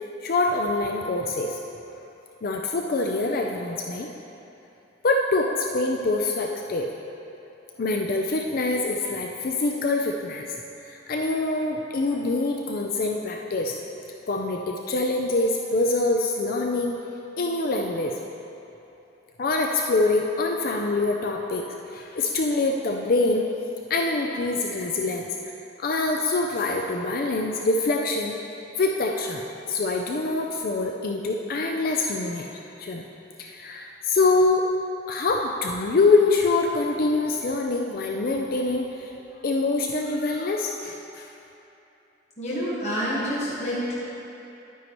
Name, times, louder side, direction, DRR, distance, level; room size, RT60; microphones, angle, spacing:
voice 1, 0.2-1.6 2.4-4.1 5.0-6.9 7.8-10.5 10.8-13.8 14.3-17.0 17.4-18.1 19.4-23.5 23.9-28.3 28.8-32.5 32.8-33.1 33.4-34.6 35.1-39.1 39.4-41.3, left 3 dB, 55° left, 1 dB, 0.5 m, -25 dB
voice 2, 42.4-43.9, equal, 40° left, -8 dB, 1.4 m, -28 dB
11.0 x 9.2 x 3.0 m, 2.9 s
head